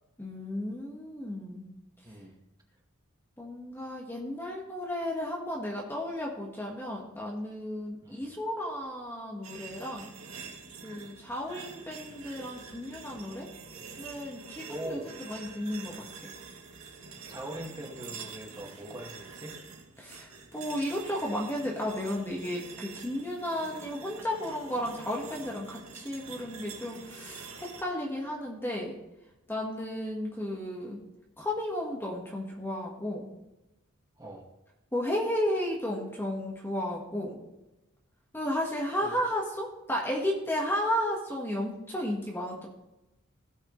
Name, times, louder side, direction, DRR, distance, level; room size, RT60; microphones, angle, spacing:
voice 1, 0.2-1.7 3.4-10.1 10.8-13.5 14.0-15.0 15.3-16.3 20.0-29.0 29.5-31.0 31.4-33.3 34.9-37.4 38.3-42.7, left 1 dB, 10° left, -2 dB, 1.5 m, -33 dB
voice 2, 2.0-2.3 8.0-8.3 14.7-15.1 17.3-19.6 34.2-34.4 38.9-39.1, right 1 dB, 20° right, -1 dB, 2.0 m, -41 dB
sound 1, 9.4-27.8, right 5 dB, 85° right, 2.1 m, -46 dB
17.5 x 6.5 x 3.2 m, 0.96 s
head